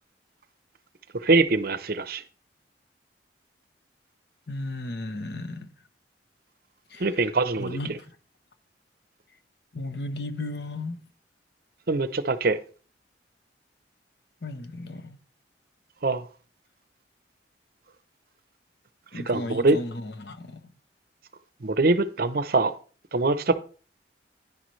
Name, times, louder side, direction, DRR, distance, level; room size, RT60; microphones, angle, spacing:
voice 1, 1.1-2.2 7.0-7.8 11.9-12.6 16.0-16.2 19.3-19.8 21.6-22.7 23.1-23.6, right 3 dB, 55° right, 0.7 m, -23 dB
voice 2, 4.5-5.7 6.9-7.3 7.6-8.2 9.7-11.0 14.4-15.2 19.1-20.7, left 2 dB, 65° left, 1.0 m, -35 dB
10.5 x 10.5 x 3.2 m
head